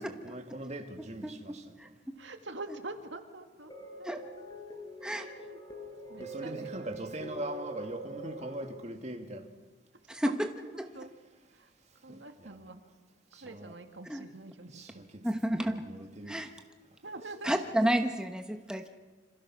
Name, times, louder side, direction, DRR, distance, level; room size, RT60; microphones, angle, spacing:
voice 1, 0.0-1.8 6.2-9.5 12.4-12.6 13.3-13.8 14.7-16.4 17.5-17.6, right 1 dB, 35° right, 5 dB, 2.1 m, -41 dB
voice 2, 1.2-2.1 4.0-4.2 5.0-5.3 10.1-10.5 10.8-10.9 12.1-12.2 14.1-14.2 15.2-15.9 16.3-16.5 17.4-18.9, right 1 dB, 5° right, 5 dB, 1.0 m, -31 dB
voice 3, 2.2-3.7 4.0-4.1 5.2-5.6 6.1-6.6 10.7-11.1 11.5-11.7 12.0-12.8 13.4-15.0 17.0-17.7, right 2 dB, 80° right, 6 dB, 2.1 m, -45 dB
sound 1, 3.7-8.7, right 2 dB, 20° left, 5.7 m, -44 dB
27.0 x 26.0 x 6.2 m, 1.3 s
head